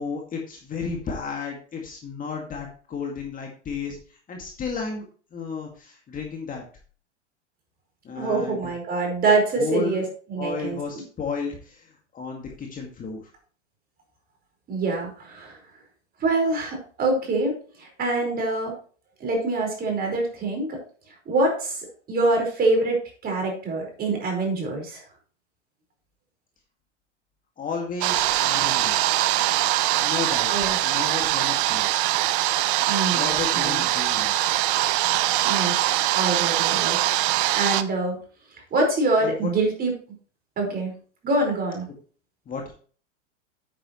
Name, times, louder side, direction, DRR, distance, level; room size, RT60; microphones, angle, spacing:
voice 1, 0.0-5.0 5.3-6.6 8.0-8.7 9.6-10.0 10.4-13.2 27.6-29.0 30.0-30.5 30.8-32.1 33.1-34.5 39.2-39.5 42.5-42.7, left 5 dB, 20° left, 1 dB, 2.1 m, -33 dB
voice 2, 8.1-10.8 14.7-15.6 16.2-18.7 19.2-20.8 21.2-25.1 30.5-30.8 32.9-33.8 35.4-35.8 36.1-38.2 38.7-39.9 40.6-40.9 41.2-41.8, right 2 dB, 25° right, 2 dB, 5.0 m, -25 dB
sound 1, 28.0-37.8, right 15 dB, 45° right, 0.8 m, -22 dB
10.0 x 9.0 x 3.1 m, 0.41 s
figure-of-eight pair, 100°, 36 cm